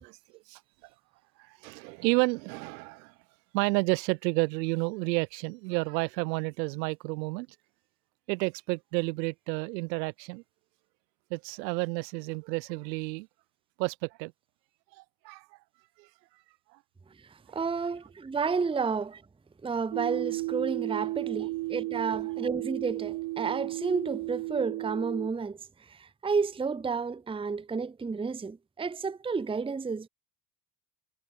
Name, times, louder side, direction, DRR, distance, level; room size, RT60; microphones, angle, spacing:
voice 1, 1.4-3.1 3.5-7.5 8.3-10.4 11.3-13.3 13.8-14.3 14.9-15.5 16.0-16.1 16.7-16.8, right 25 dB, 80° right, 1.4 m, -31 dB
voice 2, 17.5-19.2 19.6-25.6 25.9-30.1, right 5 dB, 10° right, 0.8 m, -31 dB
sound 1, 19.9-25.3, right 21 dB, 50° right, 0.7 m, -34 dB
hypercardioid pair, 80°, 50 cm